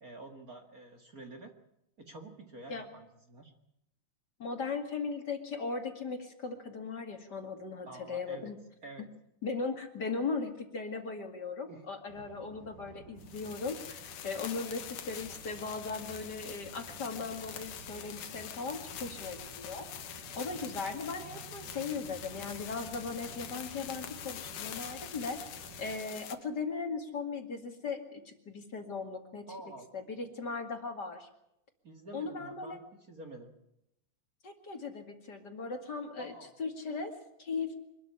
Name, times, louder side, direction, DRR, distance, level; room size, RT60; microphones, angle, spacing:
voice 1, 0.0-1.5 2.0-3.5 7.9-8.5 8.8-9.1 11.7-11.8 29.5-29.9 31.8-33.5 36.2-36.5, right 2 dB, 35° right, 4 dB, 2.0 m, -48 dB
voice 2, 4.4-8.6 9.4-19.9 20.1-25.4 25.8-29.4 29.9-31.3 32.1-32.8 34.4-36.3 36.6-37.8, left 4 dB, 35° left, 5 dB, 2.4 m, -38 dB
sound 1, 12.1-26.0, right 7 dB, 85° right, 2.8 m, -53 dB
sound 2, 13.2-26.4, left 10 dB, 90° left, 2.9 m, -45 dB
25.0 x 13.0 x 9.9 m, 0.83 s
omnidirectional pair, 3.5 m